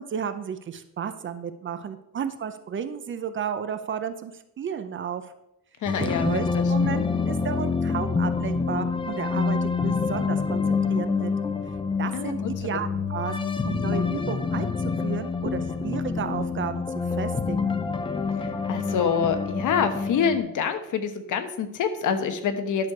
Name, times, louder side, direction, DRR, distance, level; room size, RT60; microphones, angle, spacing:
voice 1, 0.0-5.2 6.0-11.3 12.0-17.8, right 7 dB, 35° right, 10 dB, 0.6 m, -33 dB
voice 2, 5.8-6.6 12.1-12.8 18.4-22.9, left 6 dB, 60° left, 8 dB, 1.1 m, -26 dB
sound 1, 5.9-20.4, left 4 dB, 15° left, 0.5 m, -27 dB
10.5 x 6.4 x 4.8 m, 0.85 s
cardioid pair, 160°, 34 cm